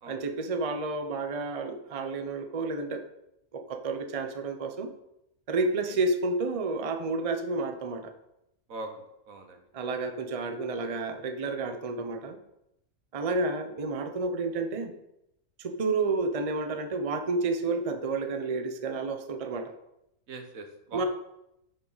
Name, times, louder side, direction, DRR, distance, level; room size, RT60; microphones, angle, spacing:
voice 1, 0.1-3.0 3.5-4.9 5.5-8.1 9.7-12.4 13.1-14.9 15.6-19.7 20.9-21.0, right 3 dB, 30° right, 6 dB, 0.7 m, -30 dB
voice 2, 8.7-9.6 20.3-21.1, right 3 dB, 75° right, 5 dB, 1.6 m, -41 dB
11.0 x 6.5 x 4.0 m, 0.84 s
omnidirectional pair, 1.4 m